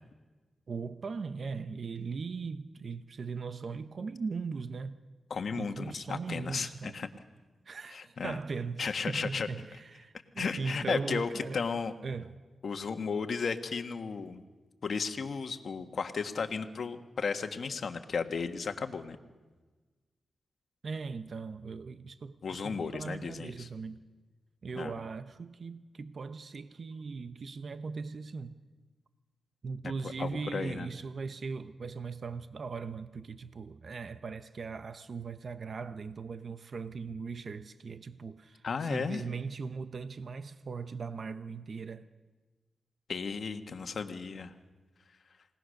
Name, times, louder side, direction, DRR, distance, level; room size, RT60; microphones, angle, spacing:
voice 1, 0.7-5.0 5.5-7.0 7.6-11.7 12.0-12.4 20.8-24.0 24.6-28.6 29.6-42.1, right 4 dB, 55° right, 0.8 m, -39 dB
voice 2, 5.3-7.1 7.9-8.4 8.8-9.5 10.4-11.9 12.6-14.4 14.8-19.2 22.4-23.7 24.8-24.9 30.2-30.9 38.6-39.2 43.1-44.5, left 5 dB, 60° left, 1.5 m, -34 dB
28.5 x 18.0 x 6.6 m
cardioid pair, 75°, 0 cm